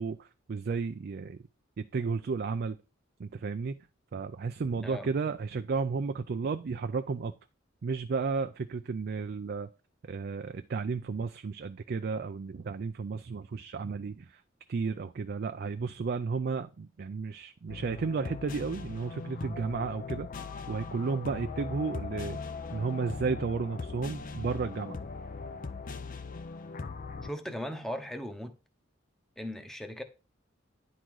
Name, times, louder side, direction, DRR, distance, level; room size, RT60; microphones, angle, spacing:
voice 1, 0.0-1.4 1.8-2.8 3.2-3.8 4.1-7.3 7.8-9.7 10.0-14.4 14.7-20.3 20.7-22.4 22.7-25.0, right 4 dB, 55° right, 0.4 m, -33 dB
sound 1, 17.7-27.3, left 4 dB, 45° left, 0.6 m, -39 dB
voice 2, 27.2-28.5 29.4-30.0, equal, ahead, 0.9 m, -38 dB
10.0 x 3.9 x 4.7 m
head